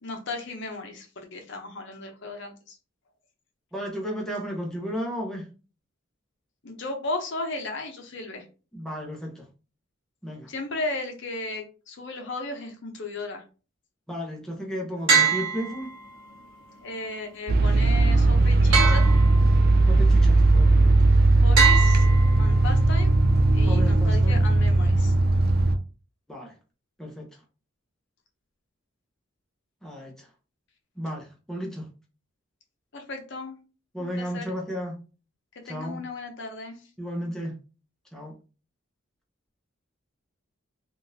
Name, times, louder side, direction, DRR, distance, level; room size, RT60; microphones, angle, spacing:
voice 1, 0.0-2.8 6.6-8.4 10.5-13.4 16.8-19.0 21.4-22.1 22.4-23.2 23.5-25.1 32.9-33.5 34.0-34.5 35.7-36.8, left 2 dB, 60° left, 4 dB, 0.7 m, -35 dB
voice 2, 3.7-5.5 8.7-9.5 10.2-10.5 14.1-15.9 19.9-20.9 23.6-24.4 26.3-26.5 27.0-27.3 29.8-30.3 31.0-31.9 33.9-34.9 35.6-36.0 37.0-37.5 38.1-38.3, equal, ahead, -2 dB, 0.7 m, -33 dB
sound 1, 15.1-16.3 18.7-19.8 21.6-22.8, right 6 dB, 65° right, 1.0 m, -24 dB
sound 2, 17.5-25.7, right 2 dB, 45° right, 0.4 m, -18 dB
3.6 x 2.4 x 2.6 m, 0.34 s
head